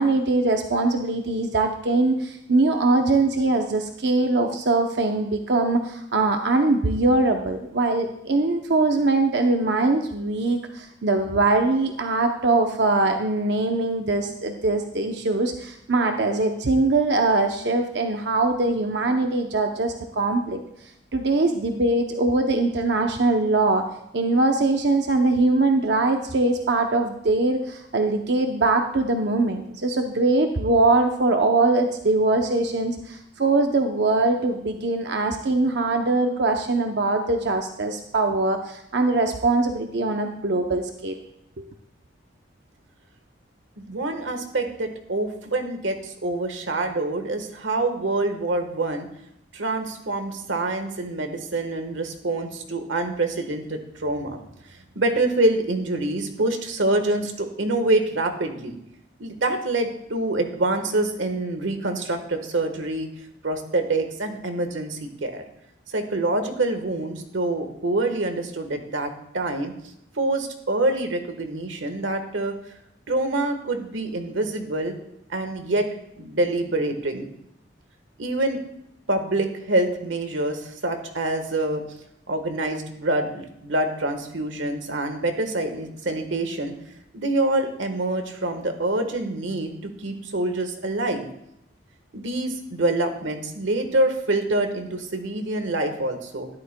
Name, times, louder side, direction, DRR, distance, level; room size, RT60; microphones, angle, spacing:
voice 1, 0.0-20.6 21.1-23.8 24.1-41.2 41.6-41.7, right 2 dB, 60° right, 4 dB, 0.7 m, -22 dB
voice 2, 43.8-49.1 49.5-54.4 54.9-58.8 59.2-63.1 63.4-65.4 65.9-69.7 70.1-72.6 73.1-74.9 75.3-75.9 76.2-77.3 78.2-78.6 79.1-81.8 82.3-86.7 87.1-91.3 92.1-96.5, right 2 dB, 80° right, 6 dB, 1.3 m, -26 dB
13.5 x 11.5 x 2.2 m, 0.79 s
head